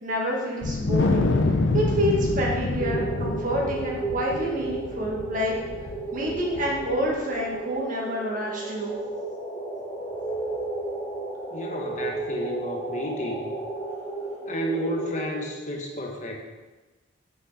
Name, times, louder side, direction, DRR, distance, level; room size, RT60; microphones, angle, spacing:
voice 1, 0.0-1.3 1.7-5.5 6.1-8.9, equal, 45° right, -2 dB, 1.9 m, -28 dB
Wind, 0.6-7.1, left 2 dB, 80° left, 0.6 m, -27 dB
sound 1, 2.8-15.5, right 2 dB, 5° left, 1.9 m, -33 dB
voice 2, 11.5-13.5 14.5-16.4, equal, 40° left, 1 dB, 1.1 m, -31 dB
9.6 x 5.9 x 4.2 m, 1.2 s
head